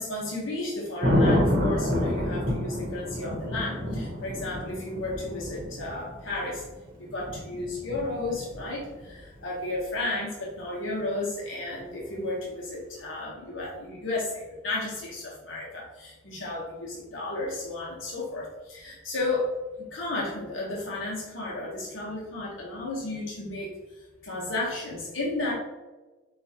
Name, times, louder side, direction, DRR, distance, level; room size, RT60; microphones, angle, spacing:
voice 1, 0.0-6.6 7.0-19.5 19.8-23.7 24.2-25.5, left 2 dB, 75° left, -4 dB, 1.0 m, -33 dB
Thunder, 1.0-9.1 11.8-12.1, left 1 dB, 45° right, 0.9 m, -28 dB
6.6 x 2.4 x 2.8 m, 1.2 s
head